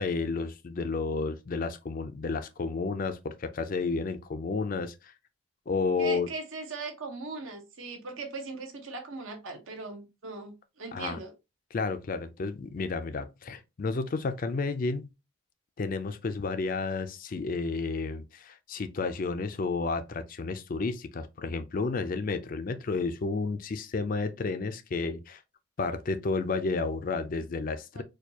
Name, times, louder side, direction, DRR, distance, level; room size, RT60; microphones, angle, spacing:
voice 1, 0.0-5.1 5.7-6.3 10.9-11.2 11.7-15.1 15.8-25.4 25.8-28.0, left 4 dB, 40° left, 0.4 m, -31 dB
voice 2, 6.0-11.3 27.9-28.0, right 3 dB, 70° right, 0.9 m, -39 dB
4.4 x 2.3 x 2.8 m
head